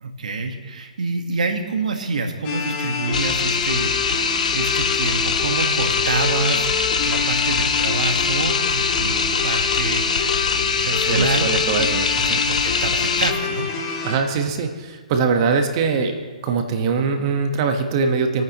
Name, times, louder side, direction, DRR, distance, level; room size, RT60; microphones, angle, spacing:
voice 1, 0.0-11.5 12.3-13.7, right 3 dB, 80° right, 5 dB, 1.6 m, -27 dB
sound 1, 2.4-14.2, left 5 dB, 35° left, 2.2 m, -28 dB
sound 2, 3.1-13.3, left 5 dB, 80° left, 0.9 m, -22 dB
voice 2, 11.1-12.4 14.0-16.2 16.4-18.4, right 5 dB, 40° right, 5 dB, 1.4 m, -22 dB
26.0 x 9.2 x 3.1 m, 1.4 s
hypercardioid pair, 140°, 4 cm